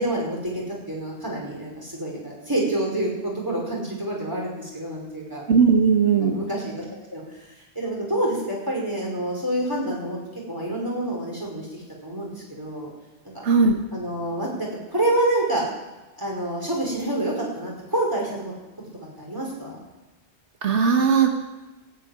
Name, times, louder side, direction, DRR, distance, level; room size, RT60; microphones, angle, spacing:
voice 1, 0.0-5.4 6.2-6.8 7.1-7.2 7.7-10.2 10.5-12.9 13.9-15.6 16.2-18.5 19.2-19.8, right 1 dB, 20° right, -3 dB, 5.0 m, -27 dB
voice 2, 5.5-6.3 13.4-13.8 20.6-21.3, right 5 dB, 90° right, 4 dB, 1.5 m, -18 dB
14.5 x 8.2 x 9.5 m, 1.1 s
omnidirectional pair, 1.2 m